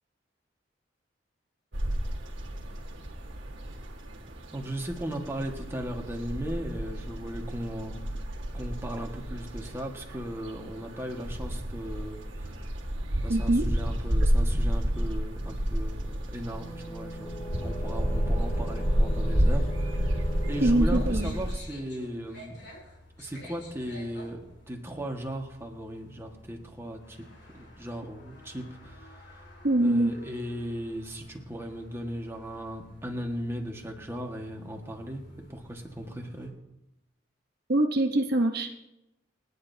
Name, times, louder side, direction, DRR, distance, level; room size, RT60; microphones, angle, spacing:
sound 1, 1.7-21.6, equal, 85° right, 1.8 m, -30 dB
voice 1, 4.5-8.3 8.5-12.7 13.2-22.5 23.2-27.3 27.5-29.5 29.8-36.5, equal, 15° right, 1 dB, 1.6 m, -37 dB
voice 2, 13.3-13.6 20.6-21.3 29.6-30.1 37.7-38.7, right 1 dB, 60° right, 4 dB, 1.0 m, -24 dB
sound 2, 16.5-20.8, left 1 dB, 40° left, 1.6 m, -39 dB
sound 3, 20.2-36.5, left 1 dB, 70° left, 5.0 m, -51 dB
28.5 x 9.8 x 2.8 m, 0.92 s
head